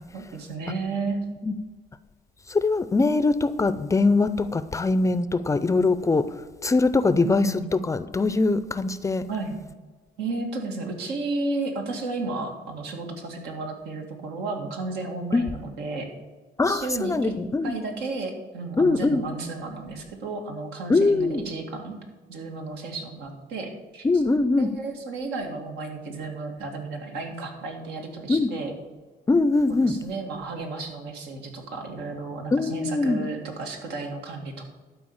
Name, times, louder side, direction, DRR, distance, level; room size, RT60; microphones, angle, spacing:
voice 1, 0.1-1.2 7.2-7.6 9.3-9.6 10.2-16.1 16.7-17.3 17.6-22.0 22.3-24.1 24.6-28.7 29.8-34.7, right 3 dB, 85° right, 2 dB, 2.2 m, -33 dB
voice 2, 2.5-6.3 6.6-9.3 15.3-15.4 16.6-17.7 18.8-19.2 20.9-21.4 24.0-24.7 28.3-28.5 29.3-29.9 32.5-33.2, left 3 dB, 20° left, 13 dB, 0.5 m, -22 dB
12.0 x 4.8 x 7.2 m, 1.3 s
cardioid pair, 110°, 17 cm